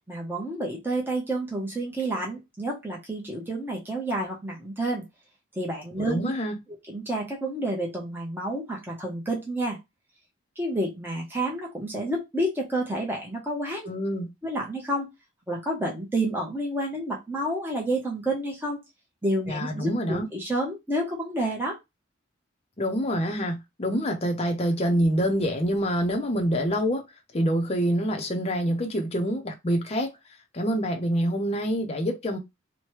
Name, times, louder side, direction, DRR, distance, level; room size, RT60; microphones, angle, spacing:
voice 1, 0.1-5.0 5.6-6.3 6.9-9.8 10.6-13.9 14.4-15.1 15.5-18.8 19.2-21.8, right 1 dB, 10° right, 0.8 m, -29 dB
voice 2, 6.0-6.5 13.9-14.3 19.5-20.3 22.8-27.0 27.3-30.2 30.5-32.4, equal, 30° left, 0.6 m, -26 dB
3.1 x 2.1 x 2.9 m
head